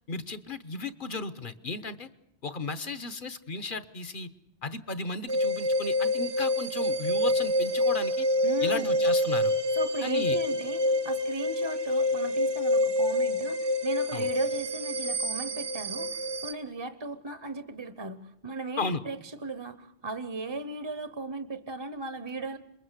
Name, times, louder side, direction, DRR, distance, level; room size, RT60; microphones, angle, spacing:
voice 1, 0.1-2.1 2.4-4.3 4.6-8.3 8.6-9.5 10.0-10.4 14.1-14.3 18.8-19.0, left 3 dB, 50° left, 13 dB, 1.3 m, -35 dB
sound 1, 5.3-16.5, left 1 dB, 75° right, 1.5 m, -27 dB
voice 2, 8.4-9.0 9.8-22.6, right 3 dB, 25° right, 11 dB, 1.0 m, -37 dB
27.0 x 21.5 x 8.2 m, 0.81 s
omnidirectional pair, 1.1 m